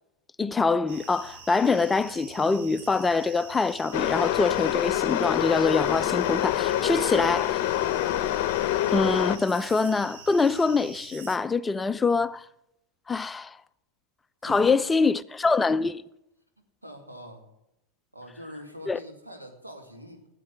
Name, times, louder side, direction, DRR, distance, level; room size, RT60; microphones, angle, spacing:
voice 1, 0.4-7.6 8.9-12.4 13.1-13.6 14.4-16.0 18.9-19.0, left 4 dB, 15° left, 0.4 m, -24 dB
sound 1, 0.9-11.4, right 6 dB, 55° right, 1.2 m, -46 dB
sound 2, 3.9-9.4, left 13 dB, 45° left, 0.7 m, -26 dB
voice 2, 16.8-17.5 18.1-20.3, equal, 85° right, 2.4 m, -44 dB
13.5 x 8.3 x 7.6 m
figure-of-eight pair, 90°, 0 cm